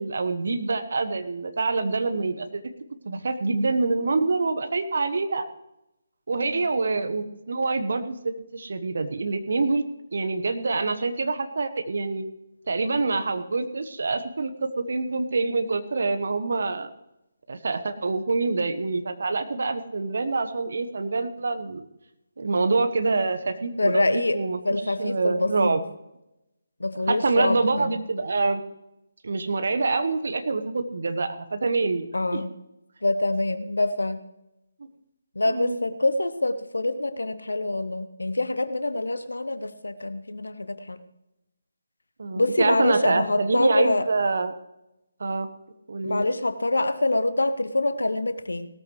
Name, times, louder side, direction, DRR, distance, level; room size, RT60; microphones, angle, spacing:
voice 1, 0.0-2.6 3.0-5.4 6.3-9.8 10.1-12.2 12.7-16.9 17.5-21.9 22.4-25.9 27.1-28.6 29.2-32.0 32.3-32.4 35.4-35.8 42.2-44.5 45.2-45.5 45.9-46.2, right 3 dB, 55° right, 9 dB, 1.2 m, -26 dB
voice 2, 23.8-24.4 24.6-25.7 26.8-27.9 32.1-32.5 33.0-34.2 35.4-41.0 42.4-44.0 46.0-48.7, left 2 dB, 70° left, 11 dB, 0.9 m, -25 dB
18.0 x 13.5 x 3.2 m, 0.90 s
figure-of-eight pair, 145°, 0 cm